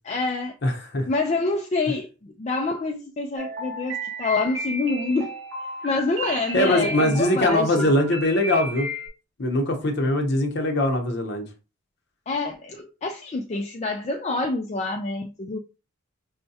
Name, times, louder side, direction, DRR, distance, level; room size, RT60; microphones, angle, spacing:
voice 1, 0.0-0.6 1.1-5.3 5.8-7.9 12.3-15.6, left 3 dB, 30° left, 0.3 m, -27 dB
voice 2, 0.6-1.1 6.5-8.9 9.4-11.5, left 1 dB, 50° left, 0.8 m, -22 dB
sound 1, 3.4-9.1, right 1 dB, 60° right, 1.4 m, -33 dB
5.5 x 2.2 x 2.7 m
head